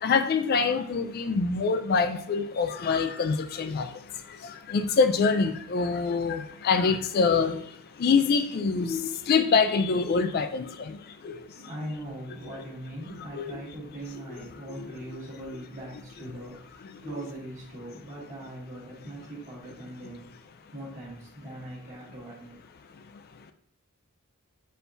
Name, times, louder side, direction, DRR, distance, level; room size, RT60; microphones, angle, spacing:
voice 1, 0.0-3.9 4.7-7.6 8.0-11.0 11.2-11.3 13.3-13.4 14.8-14.9, left 5 dB, 45° left, 9 dB, 0.3 m, -25 dB
voice 2, 11.5-20.2 20.7-22.5, right 1 dB, 35° right, -7 dB, 1.7 m, -40 dB
4.4 x 3.3 x 2.6 m, 0.66 s
head